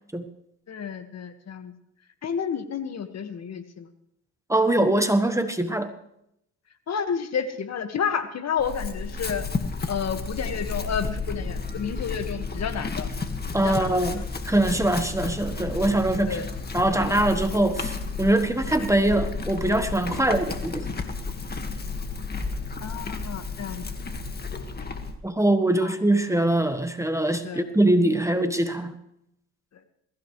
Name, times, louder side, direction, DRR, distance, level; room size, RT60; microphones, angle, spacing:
voice 1, 0.7-1.7 2.2-3.9 6.9-9.5 9.9-13.1 13.6-14.0 16.3-16.5 22.8-23.8 25.8-25.9 27.4-27.6, left 7 dB, 55° left, 8 dB, 1.9 m, -30 dB
voice 2, 4.5-5.9 13.5-16.4 16.7-20.9 25.2-28.9, right 1 dB, 10° right, 8 dB, 1.4 m, -23 dB
Chewing mastication / Livestock farm animals working animals, 8.6-25.2, left 4 dB, 30° left, 1.9 m, -32 dB
22.0 x 15.0 x 3.3 m, 0.77 s
supercardioid pair, 75°, 32 cm